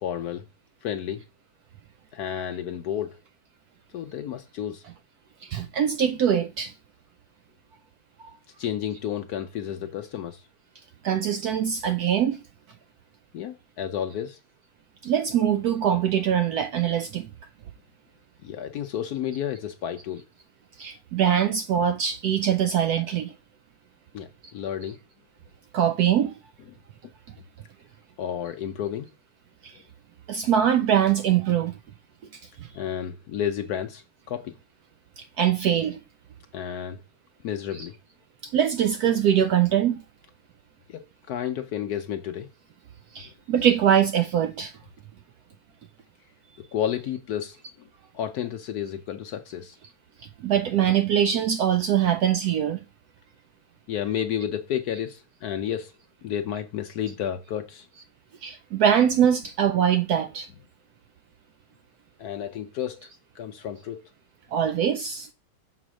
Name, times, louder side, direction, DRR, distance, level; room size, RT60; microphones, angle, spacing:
voice 1, 0.0-0.4 0.8-1.2 2.1-3.2 3.9-4.8 8.6-10.4 13.3-14.4 18.4-20.2 24.1-25.0 26.7-26.8 28.2-29.1 29.7-29.8 32.7-34.5 36.5-37.0 37.4-37.9 40.9-42.5 46.6-47.9 48.1-49.8 53.9-55.9 56.2-57.9 62.2-63.1 63.3-64.1, left 9 dB, 70° left, 0.9 m, -31 dB
voice 2, 5.4-6.7 11.0-12.4 15.0-17.3 20.8-23.3 25.7-26.3 29.6-29.8 30.3-31.7 32.6-32.7 35.2-36.0 38.4-40.0 43.1-44.7 50.4-52.8 58.4-60.5 64.5-65.3, right 9 dB, 80° right, 0.8 m, -23 dB
6.9 x 4.1 x 6.2 m
omnidirectional pair, 2.1 m